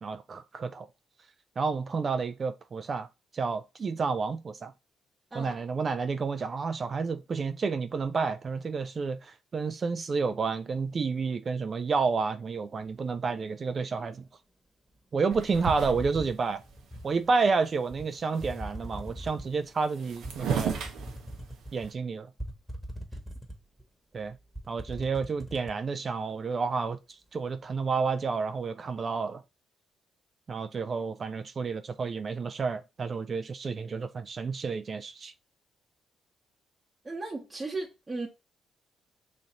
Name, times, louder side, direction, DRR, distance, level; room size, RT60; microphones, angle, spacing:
voice 1, 0.0-0.9 1.6-3.1 3.3-4.7 5.3-14.2 15.1-16.6 17.0-20.8 21.7-22.3 24.1-24.4 24.7-27.0 27.3-29.4 30.5-35.3, right 4 dB, 45° right, 0.4 m, -30 dB
sound 1, 15.3-16.4 17.0-17.1 17.3-17.8 18.0-18.7 19.6-19.7 19.8-21.9, right 7 dB, 80° right, 0.7 m, -34 dB
sound 2, 15.8-17.1 17.9-18.1 18.4-19.6 20.2-21.9 22.4-23.8 24.2-24.3 24.6-25.8, equal, 5° right, 1.2 m, -41 dB
voice 2, 37.0-38.3, right 3 dB, 25° right, 1.0 m, -36 dB
3.1 x 2.6 x 4.0 m
supercardioid pair, 60°, 0 cm